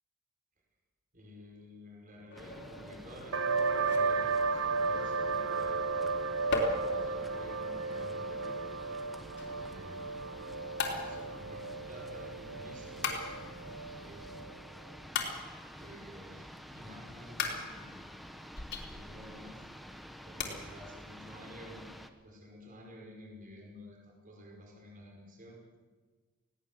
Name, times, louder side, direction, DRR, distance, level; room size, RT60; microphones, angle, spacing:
voice 1, 1.1-5.9 6.8-8.7 9.6-10.1 11.0-13.2 13.9-14.5 15.8-18.0 18.8-19.7 20.2-21.9 22.2-25.7, equal, 40° right, 0 dB, 5.2 m, -51 dB
sound 1, 2.3-4.6 6.5-9.5 10.8-12.3 13.0-14.2 15.1-16.0 17.4-19.4 19.7-19.8 20.4-20.5, left 3 dB, 55° left, 3.5 m, -39 dB
sound 2, 2.4-22.1, equal, ahead, 1.1 m, -50 dB
sound 3, 3.3-14.6, right 4 dB, 75° right, 1.0 m, -34 dB
20.5 x 17.5 x 7.7 m, 1.4 s
head